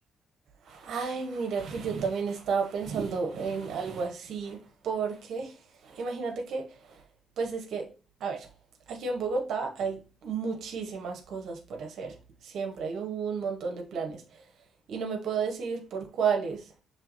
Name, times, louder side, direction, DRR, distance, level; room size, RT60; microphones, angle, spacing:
voice 1, 0.6-4.6 4.8-5.6 5.8-7.0 7.4-7.9 8.2-8.5 8.9-12.1 12.4-14.2 14.9-16.7, right 5 dB, 75° right, 0.7 m, -32 dB
5.6 x 3.1 x 2.5 m
cardioid pair, 90°, 0 cm